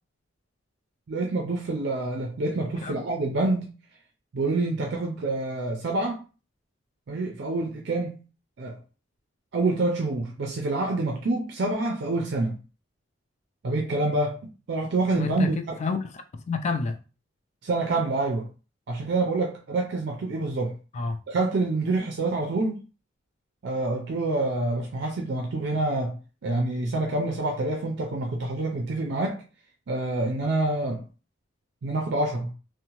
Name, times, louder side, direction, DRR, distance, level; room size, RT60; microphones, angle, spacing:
voice 1, 1.1-3.7 4.3-6.2 7.1-8.2 8.6-8.8 9.5-12.6 13.6-14.4 14.7-15.8 17.6-18.5 18.9-20.7 21.3-22.8 23.6-26.2 26.4-29.4 29.9-31.0 31.8-32.5, right 2 dB, 60° right, 0.4 m, -27 dB
voice 2, 15.2-17.0 20.9-21.2, left 4 dB, 35° left, 0.3 m, -29 dB
2.7 x 2.1 x 2.9 m
head